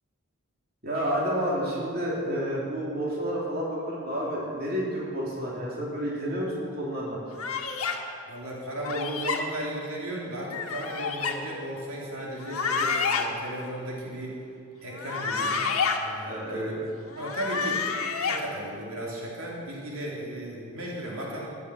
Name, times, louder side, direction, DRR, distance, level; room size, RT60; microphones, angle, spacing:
voice 1, 0.8-7.2 16.2-16.7, equal, 45° right, -5 dB, 3.2 m, -30 dB
sound 1, 7.4-8.0 8.8-9.4 10.5-11.3 12.4-13.2 14.9-16.0 17.1-18.4, left 5 dB, 90° left, 1.4 m, -29 dB
voice 2, 8.3-14.4 14.8-15.6 16.0-16.8 17.2-17.9 18.2-21.5, right 1 dB, 85° right, -4 dB, 3.0 m, -35 dB
15.5 x 10.5 x 6.4 m, 2.5 s
head